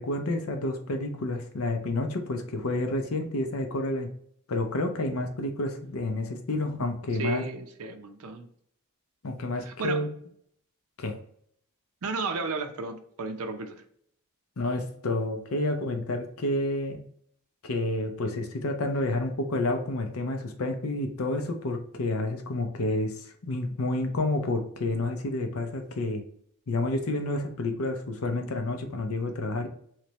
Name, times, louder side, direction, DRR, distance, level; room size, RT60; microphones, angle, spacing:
voice 1, 0.0-4.1 4.5-7.4 9.2-10.1 11.0-11.2 14.6-17.0 17.6-26.2 26.7-29.7, left 2 dB, 70° left, 0.6 m, -29 dB
voice 2, 7.2-8.5 9.6-10.0 12.0-13.8, right 4 dB, 75° right, 0.6 m, -33 dB
3.2 x 3.1 x 2.9 m
head